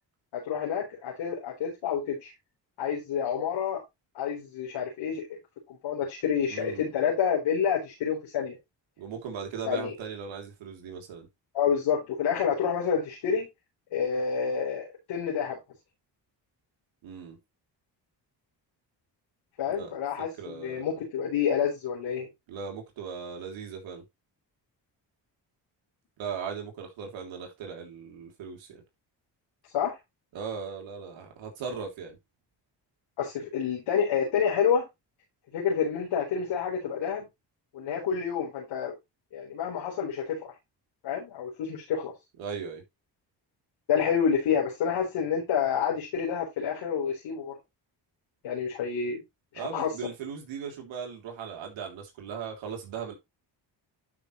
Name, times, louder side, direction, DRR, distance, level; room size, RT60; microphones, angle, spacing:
voice 1, 0.3-2.3 2.8-3.8 4.1-5.4 5.7-8.6 9.6-9.9 11.5-13.5 13.9-15.6 19.6-22.3 29.7-30.0 33.2-34.9 35.5-37.3 37.7-38.9 39.3-40.5 41.0-42.1 43.9-47.5 48.4-49.2 49.5-49.9, left 7 dB, 90° left, 4.3 m, -28 dB
voice 2, 6.5-6.9 9.0-11.3 17.0-17.4 19.6-19.9 20.4-20.9 22.5-24.0 26.2-28.8 30.3-32.2 42.4-42.8 49.5-53.1, right 6 dB, 90° right, 3.3 m, -38 dB
12.0 x 5.9 x 3.2 m
cardioid pair, 75°, 45 cm